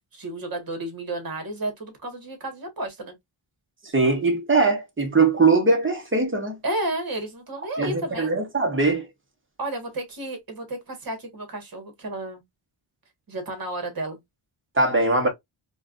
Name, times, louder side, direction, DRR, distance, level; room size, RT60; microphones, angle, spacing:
voice 1, 0.1-3.1 6.6-8.3 9.6-12.4 13.3-14.2, right 1 dB, 45° right, 1.5 m, -32 dB
voice 2, 3.8-6.6 7.8-9.1 14.8-15.3, right 3 dB, 25° right, 1.0 m, -21 dB
4.4 x 2.3 x 2.5 m
wide cardioid pair, 175°, 49 cm